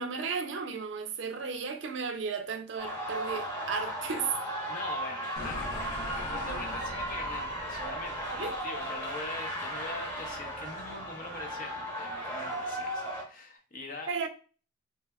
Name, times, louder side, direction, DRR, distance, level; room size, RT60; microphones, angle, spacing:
voice 1, 0.0-4.3 8.4-8.5 14.1-14.3, right 5 dB, 65° right, 0.4 m, -34 dB
sound 1, 2.8-13.2, equal, 10° left, 1.0 m, -36 dB
voice 2, 4.7-14.1, left 2 dB, 45° left, 0.6 m, -43 dB
sound 2, 5.4-10.1, left 1 dB, 90° left, 0.6 m, -42 dB
3.3 x 2.8 x 2.2 m
head